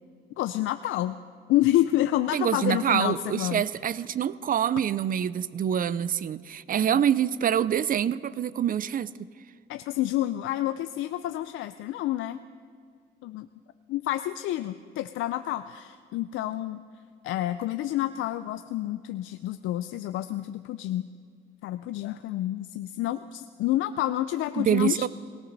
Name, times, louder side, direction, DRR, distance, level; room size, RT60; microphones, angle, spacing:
voice 1, 0.4-1.2 1.5-3.6 6.8-7.0 9.7-12.4 13.2-13.5 13.9-16.8 17.2-21.1 21.6-25.1, left 14 dB, 85° left, 11 dB, 0.4 m, -28 dB
voice 2, 2.3-9.3 24.6-25.1, right 9 dB, 45° right, 19 dB, 0.5 m, -26 dB
18.0 x 17.5 x 4.0 m, 2.2 s
cardioid pair, 90°, 20 cm